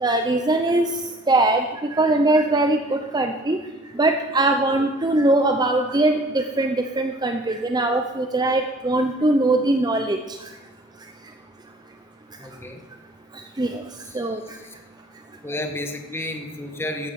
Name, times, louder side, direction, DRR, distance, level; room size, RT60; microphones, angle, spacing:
voice 1, 0.0-0.9 1.3-1.6 1.9-3.6 4.0-10.2 13.6-13.8 14.1-14.4, right 2 dB, 20° right, 5 dB, 0.6 m, -21 dB
voice 2, 12.4-12.8 14.2-14.3 15.4-17.1, left 1 dB, 10° left, 4 dB, 1.4 m, -31 dB
14.5 x 11.5 x 5.3 m, 1.2 s
head